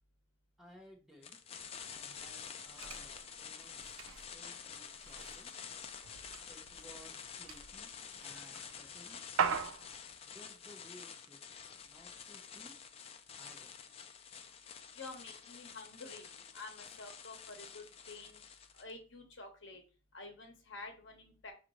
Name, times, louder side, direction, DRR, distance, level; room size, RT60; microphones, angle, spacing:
voice 1, 0.6-1.4 1.9-3.8 4.3-5.5 6.5-7.9 8.2-9.2 10.2-12.7 13.4-13.7, equal, ahead, -1 dB, 0.8 m, -59 dB
sound 1, 1.2-18.9, left 7 dB, 30° left, 0.3 m, -49 dB
sound 2, 2.1-10.1, right 6 dB, 85° right, 0.5 m, -42 dB
voice 2, 14.9-18.4 18.8-19.8 20.1-21.5, left 3 dB, 60° left, 3 dB, 1.1 m, -49 dB
5.7 x 2.6 x 3.1 m, 0.35 s
head